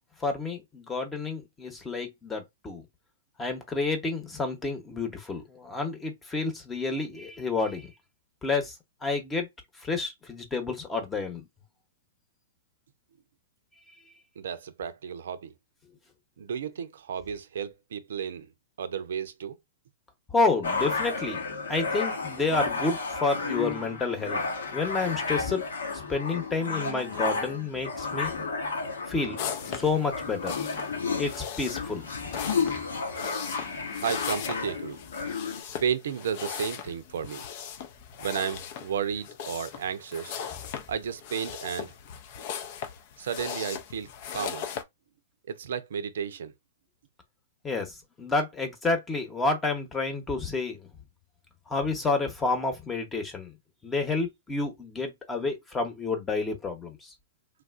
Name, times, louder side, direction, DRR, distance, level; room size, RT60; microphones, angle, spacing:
voice 1, 0.2-2.8 3.4-7.9 8.4-8.7 9.0-9.5 9.8-11.4 20.3-21.4 21.7-24.4 24.7-25.6 26.1-28.4 29.1-29.4 29.7-30.5 31.2-32.3 47.6-50.9 51.7-53.5 53.8-57.1, left 3 dB, 15° left, 1.0 m, -29 dB
voice 2, 14.4-15.5 16.4-18.5 18.8-19.6 33.6-33.7 34.0-35.0 35.8-37.4 38.2-40.4 40.9-41.9 43.2-44.7 45.5-46.5, right 7 dB, 70° right, 0.5 m, -33 dB
sound 1, 20.6-35.6, left 4 dB, 80° left, 1.1 m, -32 dB
sound 2, 29.4-44.8, left 8 dB, 50° left, 0.6 m, -38 dB
3.3 x 2.4 x 2.4 m
hypercardioid pair, 115°, 0 cm